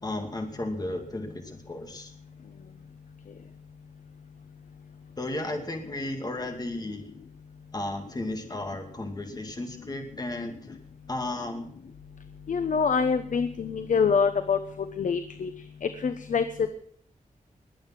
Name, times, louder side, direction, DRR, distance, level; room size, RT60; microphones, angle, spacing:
voice 1, 0.0-2.1 5.2-7.1 7.7-10.8 11.1-11.7, left 2 dB, 25° left, 4 dB, 2.3 m, -34 dB
voice 2, 12.5-14.6 15.0-15.5 15.8-16.7, left 5 dB, 65° left, 9 dB, 1.0 m, -25 dB
21.0 x 8.8 x 6.0 m, 0.65 s
wide cardioid pair, 150°, 14 cm